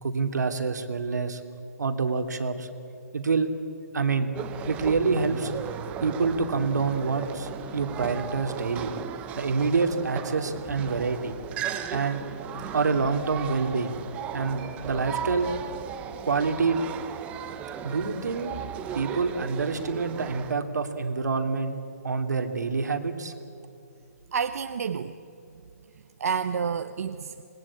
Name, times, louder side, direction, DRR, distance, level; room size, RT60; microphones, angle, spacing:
voice 1, 0.0-1.4 1.8-2.7 3.1-3.5 3.9-4.3 4.7-5.5 6.0-8.9 9.4-11.3 11.9-12.2 12.7-14.0 14.3-15.5 16.2-16.8 17.8-18.5 18.9-21.8 22.0-23.3, right 4 dB, 85° right, 6 dB, 2.7 m, -27 dB
sound 1, 4.3-20.5, right 8 dB, 15° right, 0.9 m, -36 dB
voice 2, 24.3-25.2 26.2-27.4, right 6 dB, 65° right, 8 dB, 1.0 m, -29 dB
25.5 x 21.0 x 8.7 m, 2.6 s
hypercardioid pair, 160°, 9 cm